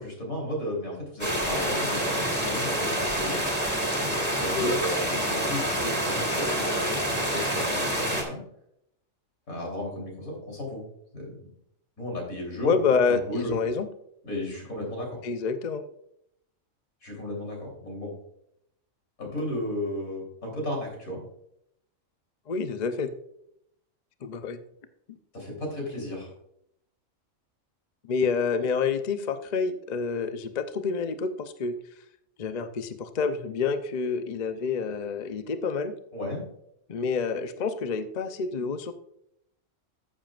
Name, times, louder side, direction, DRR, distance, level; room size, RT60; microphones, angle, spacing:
voice 1, 0.0-3.4 4.3-8.4 9.5-10.9 11.1-11.4 12.0-12.8 13.1-13.6 14.2-15.2 17.0-18.1 19.2-21.2 25.3-26.3 36.1-36.4, left 1 dB, 85° left, -1 dB, 3.9 m, -34 dB
sound 1, 1.2-8.2, right 1 dB, 5° right, 2.0 m, -27 dB
voice 2, 12.6-13.9 15.2-15.8 22.5-23.1 24.2-24.6 28.1-31.7 32.4-35.9 36.9-38.9, left 5 dB, 45° left, 9 dB, 0.6 m, -28 dB
14.5 x 7.5 x 2.4 m, 0.74 s
omnidirectional pair, 1.4 m